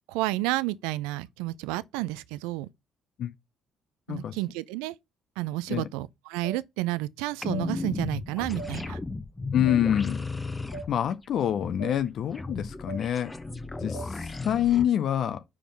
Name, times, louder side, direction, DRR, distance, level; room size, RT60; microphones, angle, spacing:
voice 1, 0.1-2.7 4.1-5.0 5.4-9.0, right 18 dB, 75° right, 0.4 m, -31 dB
sound 1, 6.4-6.6 7.5-7.7 8.6-8.7 9.6-9.8 10.7-10.9 11.8-12.0 12.9-13.0 13.9-14.1, right 3 dB, 80° left, 1.7 m, -39 dB
sound 2, 7.4-14.9, left 3 dB, 20° left, 0.9 m, -35 dB
voice 2, 9.5-10.2 10.9-13.3 13.8-15.4, left 10 dB, 60° left, 0.6 m, -26 dB
5.8 x 5.0 x 5.3 m
hypercardioid pair, 55°, 0 cm